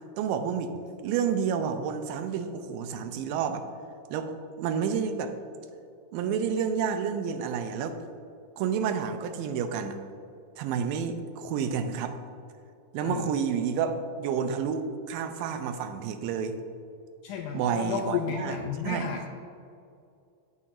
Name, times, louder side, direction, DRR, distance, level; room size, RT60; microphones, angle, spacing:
voice 1, 0.2-0.7 1.0-3.6 4.1-5.3 6.1-8.0 8.6-10.0 10.6-12.1 12.9-16.6 17.5-18.6 18.8-19.2, right 7 dB, 90° right, 8 dB, 2.3 m, -30 dB
voice 2, 13.0-13.3 17.2-19.3, left 7 dB, 85° left, 1 dB, 1.8 m, -32 dB
8.7 x 6.9 x 2.5 m, 2.5 s
omnidirectional pair, 4.0 m